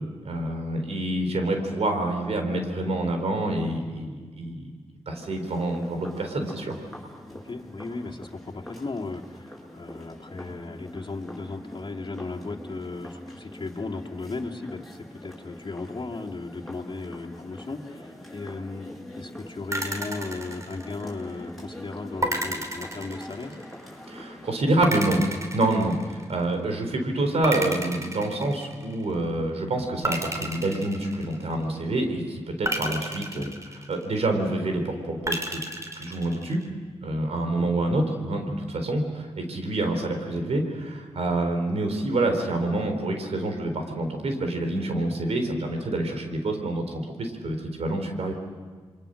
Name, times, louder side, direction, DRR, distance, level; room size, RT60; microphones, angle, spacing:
voice 1, 0.2-4.7 5.1-6.8 24.1-25.2 25.5-35.6 35.9-36.6 37.0-48.3, right 2 dB, 75° right, 5 dB, 4.1 m, -27 dB
sound 1, 5.2-24.5, left 1 dB, ahead, 6.8 m, -44 dB
voice 2, 7.3-23.6 33.3-33.6 37.5-37.7, left 3 dB, 45° left, 0 dB, 2.6 m, -36 dB
sound 2, 19.7-21.3 22.2-23.8 24.8-26.5 27.4-29.0 30.0-31.7 32.6-34.3 35.3-36.7, right 1 dB, 30° right, 3.3 m, -32 dB
28.0 x 23.5 x 6.6 m, 1.5 s
cardioid pair, 55°, 11 cm